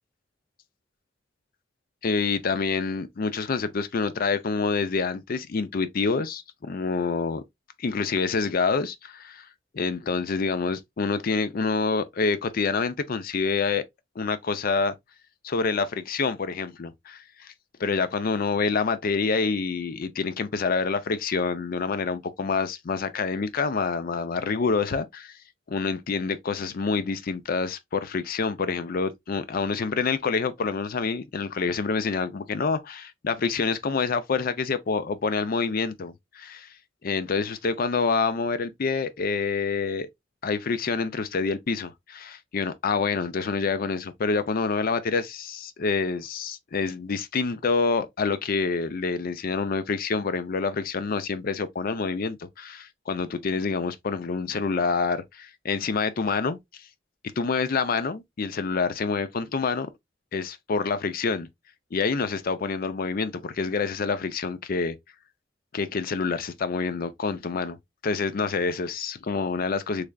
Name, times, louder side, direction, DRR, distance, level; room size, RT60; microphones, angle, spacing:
voice 1, 2.0-7.4 7.8-9.5 9.7-13.8 14.2-14.9 15.4-17.5 17.8-25.4 25.7-36.7 37.0-40.1 40.4-56.6 57.4-59.9 60.3-61.5 61.9-65.0 65.7-67.8 68.0-70.1, left 4 dB, 50° left, 0.5 m, -27 dB
3.6 x 3.3 x 2.3 m
head